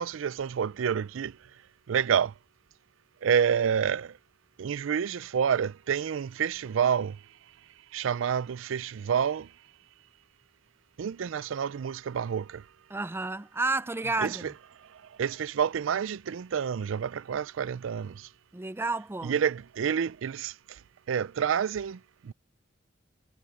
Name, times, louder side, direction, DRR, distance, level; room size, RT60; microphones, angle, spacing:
voice 1, 0.0-1.3 1.9-2.3 3.2-4.1 4.6-7.2 7.9-9.5 11.0-12.6 14.2-14.5 15.2-18.3 19.2-20.5 21.1-22.3, right 7 dB, 85° right, 0.4 m, -28 dB
voice 2, 12.9-14.5 18.5-19.4, right 3 dB, 10° right, 0.4 m, -31 dB
head